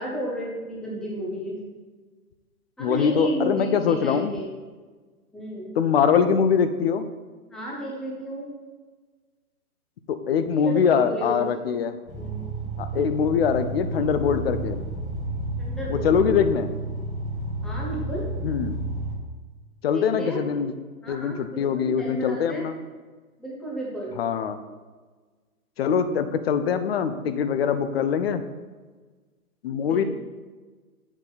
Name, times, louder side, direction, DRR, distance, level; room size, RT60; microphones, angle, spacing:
voice 1, 0.0-1.6 2.8-4.5 5.3-5.7 7.5-8.5 10.6-11.4 12.2-12.4 15.6-16.2 17.6-18.3 19.9-20.4 21.0-22.7 23.4-24.1 29.8-30.0, right 1 dB, ahead, -4 dB, 0.6 m, -33 dB
voice 2, 2.8-4.3 5.8-7.1 10.1-12.0 12.8-14.8 15.9-16.7 18.4-18.7 19.8-20.7 21.1-22.8 24.2-24.6 25.8-28.4 29.6-30.0, left 7 dB, 40° left, 10 dB, 0.6 m, -23 dB
sound 1, 12.1-19.2, right 1 dB, 65° left, 2.7 m, -31 dB
7.3 x 6.9 x 4.0 m, 1.4 s
hypercardioid pair, 135°, 45 cm